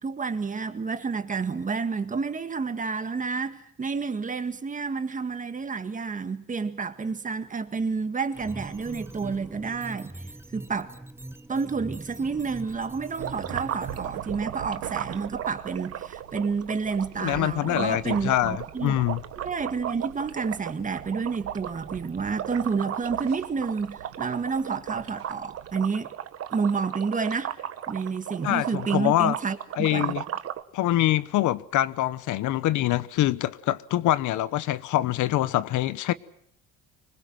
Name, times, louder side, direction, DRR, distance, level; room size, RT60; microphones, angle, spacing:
voice 1, 0.0-10.1 10.5-10.9 11.5-19.0 19.4-26.1 26.5-27.6 27.9-30.2, right 5 dB, 25° right, 1.8 m, -30 dB
sound 1, 8.3-14.2, right 1 dB, 5° right, 0.9 m, -42 dB
sound 2, 13.2-30.6, right 10 dB, 45° right, 1.4 m, -36 dB
sound 3, 13.2-25.8, right 15 dB, 85° right, 1.3 m, -45 dB
voice 2, 17.2-19.2 28.4-29.4 29.8-30.2 30.7-36.1, left 14 dB, 65° left, 1.0 m, -25 dB
25.0 x 21.0 x 7.8 m
cardioid pair, 130°, 32 cm